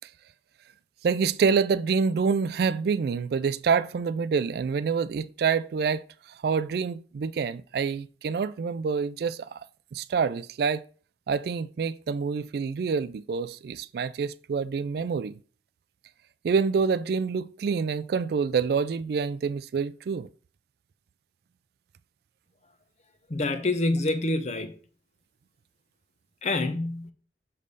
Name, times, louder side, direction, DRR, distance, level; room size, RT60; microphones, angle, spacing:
voice 1, 1.0-6.0 6.4-9.6 9.9-10.8 11.3-15.3 16.4-20.3, right 5 dB, 60° right, 0.3 m, -27 dB
voice 2, 23.3-24.7 26.4-27.1, left 2 dB, 40° left, 0.7 m, -27 dB
6.7 x 3.2 x 5.2 m
head